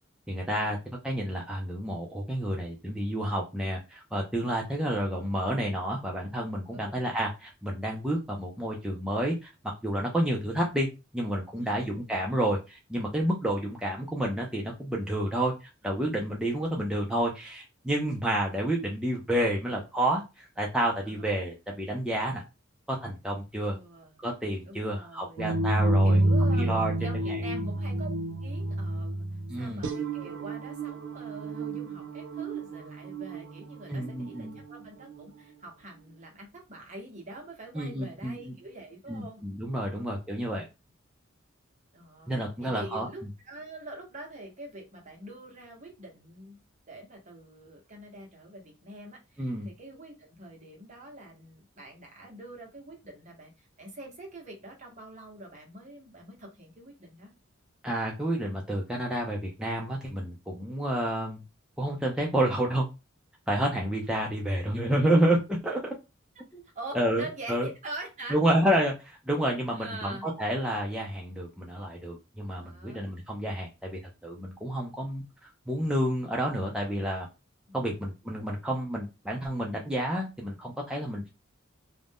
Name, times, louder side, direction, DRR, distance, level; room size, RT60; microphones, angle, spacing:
voice 1, 0.3-0.8 1.0-9.5 9.8-10.9 11.1-22.4 22.9-23.8 24.2-26.2 26.6-26.9 27.3-27.6 29.5-29.8 33.9-34.6 37.7-38.5 39.1-40.7 42.3-43.1 49.4-49.7 57.8-61.4 61.8-62.9 63.5-65.9 66.5-66.6 66.9-67.7 68.3-77.3 77.7-81.3, right 1 dB, 5° right, -2 dB, 0.4 m, -29 dB
voice 2, 4.7-5.5 6.7-7.1 11.6-11.9 21.0-21.3 23.6-24.2 24.6-25.5 26.0-28.1 28.4-29.2 29.6-39.4 39.8-40.1 41.9-42.3 42.6-46.6 46.9-57.3 66.7-68.4 69.7-70.3 72.5-73.1 77.7-78.0, right 2 dB, 35° right, 0 dB, 0.9 m, -45 dB
sound 1, 25.4-35.3, right 1 dB, 60° right, 0.4 m, -29 dB
2.5 x 2.1 x 3.3 m, 0.26 s
head